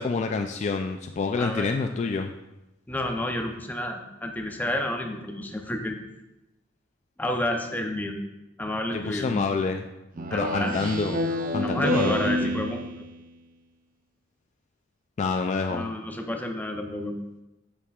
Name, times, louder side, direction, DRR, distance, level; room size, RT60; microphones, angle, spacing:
voice 1, 0.0-2.3 8.9-9.9 10.3-11.2 11.5-12.7 15.2-15.9, left 4 dB, 40° left, 5 dB, 0.3 m, -27 dB
voice 2, 1.4-1.8 2.9-6.0 7.2-8.2 8.6-9.3 10.3-10.8 11.6-13.1 15.7-17.1, left 1 dB, 10° left, 4 dB, 0.6 m, -30 dB
Speech synthesizer, 10.2-13.2, equal, 45° right, 0.5 m, -28 dB
8.3 x 7.3 x 2.4 m, 0.98 s
head